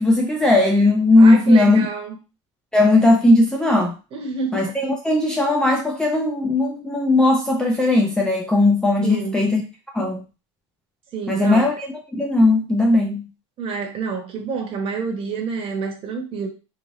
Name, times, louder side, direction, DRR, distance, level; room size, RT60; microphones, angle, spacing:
voice 1, 0.0-1.9 2.7-3.9 4.5-9.6 9.9-10.2 11.3-13.3, left 2 dB, 5° left, 0 dB, 0.3 m, -17 dB
voice 2, 1.2-2.2 4.1-4.6 9.0-9.4 11.1-11.7 13.6-16.5, right 5 dB, 35° right, 2 dB, 1.0 m, -28 dB
3.1 x 2.5 x 2.5 m, 0.31 s
supercardioid pair, 120°, 16 cm